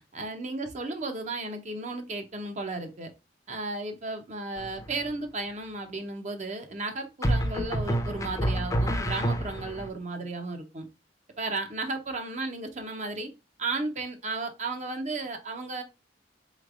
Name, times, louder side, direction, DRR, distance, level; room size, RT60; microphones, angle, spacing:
voice 1, 0.0-3.1 3.5-10.9 11.4-13.3 13.6-15.8, right 3 dB, 40° right, 5 dB, 0.8 m, -34 dB
sound 1, 4.6-5.1 7.2-9.9, right 1 dB, 20° left, 0.6 m, -28 dB
4.0 x 3.2 x 2.4 m, 0.27 s
head